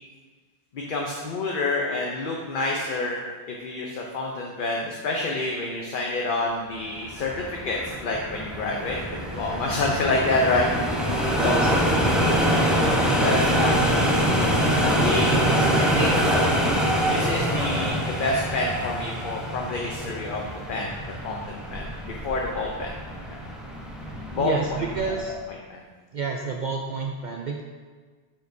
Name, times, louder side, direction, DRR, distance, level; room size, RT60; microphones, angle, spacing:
voice 1, 0.7-3.2 3.5-9.0 9.3-10.7 11.1-11.6 12.8-14.5 14.8-15.3 15.8-16.2 17.1-22.9 23.3-23.4 24.3-24.6 25.7-25.8, left 2 dB, 55° left, -1 dB, 0.8 m, -28 dB
sound 1, 7.0-25.3, equal, ahead, 0.8 m, -25 dB
sound 2, 8.7-19.3, left 1 dB, 25° left, 1.6 m, -37 dB
voice 2, 11.4-12.1 24.4-25.3 26.1-27.6, right 4 dB, 55° right, 1 dB, 0.6 m, -30 dB
8.7 x 5.7 x 2.7 m, 1.5 s
omnidirectional pair, 1.1 m